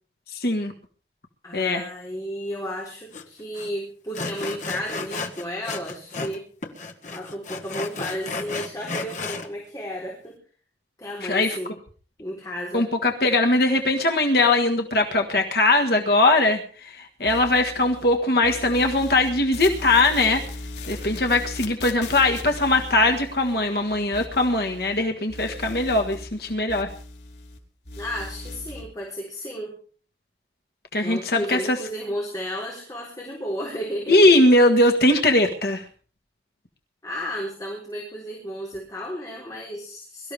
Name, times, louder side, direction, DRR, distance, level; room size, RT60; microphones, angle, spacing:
voice 1, 0.3-0.7 1.5-1.8 11.3-11.6 12.7-20.4 20.9-26.9 30.9-31.8 34.1-35.8, left 2 dB, 60° left, 3 dB, 1.6 m, -20 dB
voice 2, 1.4-6.4 7.1-10.4 11.0-11.7 12.2-12.9 28.0-29.7 31.0-34.3 37.0-40.3, equal, 20° left, -3 dB, 3.9 m, -33 dB
Sawing, 3.1-3.2 3.5-3.7 4.1-6.4 6.6-9.5, left 3 dB, 45° left, 1.6 m, -33 dB
sound 1, 17.3-18.2 18.4-25.0 25.3-27.6 27.8-28.8, left 2 dB, 75° left, 4.2 m, -38 dB
23.0 x 13.5 x 3.5 m, 0.41 s
head